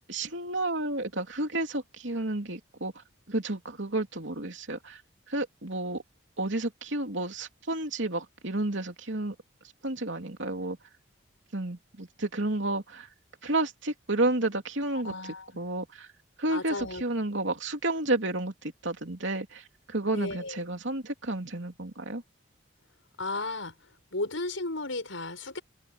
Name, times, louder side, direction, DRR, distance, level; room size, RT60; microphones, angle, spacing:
voice 1, 0.1-2.9 3.3-5.0 5.3-6.0 6.4-9.3 9.8-10.8 11.5-13.1 13.4-16.1 16.4-22.2, right 2 dB, 65° right, 3.1 m, -31 dB
voice 2, 15.0-15.5 16.5-17.0 20.1-20.6 23.2-23.7 24.1-25.6, left 2 dB, 75° left, 6.4 m, -34 dB
open air
head